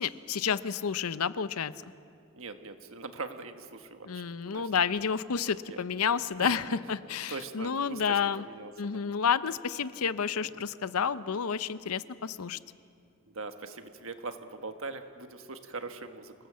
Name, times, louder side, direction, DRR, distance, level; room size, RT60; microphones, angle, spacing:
voice 1, 0.0-1.7 4.0-8.4 8.8-12.6, left 6 dB, 80° left, 15 dB, 0.6 m, -30 dB
voice 2, 2.3-4.7 5.7-5.8 6.4-6.6 7.3-9.0 13.3-16.3, right 3 dB, 65° right, 7 dB, 1.5 m, -41 dB
26.5 x 18.5 x 7.6 m, 2.5 s
head